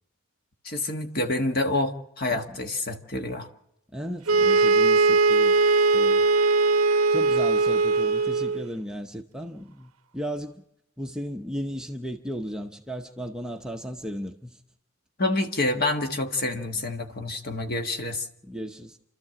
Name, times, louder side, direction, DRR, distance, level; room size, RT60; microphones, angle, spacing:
voice 1, 0.6-3.5 15.2-18.3, left 2 dB, 45° left, 5 dB, 1.5 m, -27 dB
voice 2, 2.3-2.6 3.9-5.6 5.9-6.3 7.1-10.6 11.0-14.6 18.4-19.0, equal, 5° right, 3 dB, 0.7 m, -35 dB
sound 1, 4.3-8.7, right 3 dB, 80° right, 0.7 m, -20 dB
28.5 x 13.0 x 7.6 m, 0.82 s
head